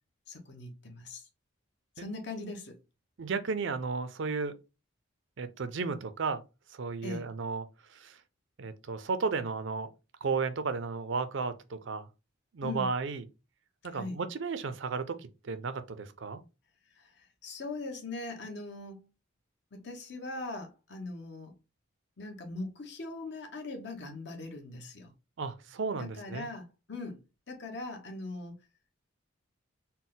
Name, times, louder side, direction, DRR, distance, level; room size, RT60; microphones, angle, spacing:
voice 1, 0.3-1.3 2.0-2.8 7.0-7.3 12.6-12.9 13.9-14.2 16.9-19.0 19.7-21.5 22.2-25.1 25.9-27.2 27.5-28.5, left 2 dB, 55° left, 0.9 m, -40 dB
voice 2, 3.2-4.5 5.4-6.4 6.7-8.2 8.6-9.9 10.2-12.1 12.5-13.2 13.8-15.2 15.4-16.4 25.4-26.5, right 4 dB, 60° right, 0.5 m, -34 dB
4.1 x 2.1 x 3.7 m
head